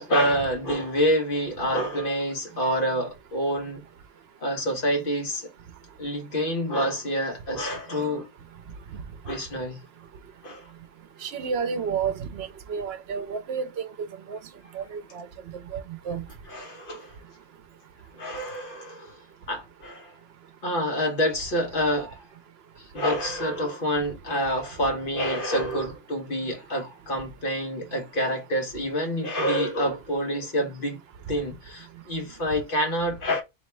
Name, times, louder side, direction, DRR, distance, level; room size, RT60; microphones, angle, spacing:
voice 1, 0.0-3.8 4.4-5.5 6.0-8.3 9.2-9.8 10.4-10.7 16.5-17.2 18.2-19.2 19.5-20.1 20.6-22.2 22.9-31.0 31.3-33.4, equal, 55° left, 1.2 m, -27 dB
voice 2, 11.2-14.4 14.7-15.3 15.7-16.2, right 6 dB, 70° right, 0.8 m, -31 dB
4.1 x 2.8 x 3.3 m
omnidirectional pair, 1.1 m